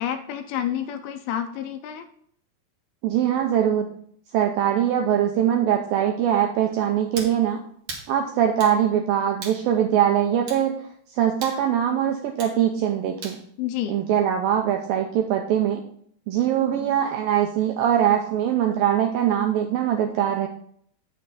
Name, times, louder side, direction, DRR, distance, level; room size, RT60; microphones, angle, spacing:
voice 1, 0.0-2.1 13.6-13.9, left 10 dB, 80° left, 7 dB, 2.3 m, -29 dB
voice 2, 3.0-3.9 4.3-7.6 8.1-10.8 11.1-13.4 13.9-15.8 16.3-20.5, right 10 dB, 85° right, 3 dB, 2.1 m, -22 dB
sound 1, 7.1-7.4 7.9-8.1 8.6-8.8 9.4-9.6 10.5-10.6 11.4-11.6 12.4-12.6 13.2-13.4, right 3 dB, 55° right, 1.5 m, -36 dB
8.8 x 6.5 x 4.0 m, 0.64 s
omnidirectional pair, 4.8 m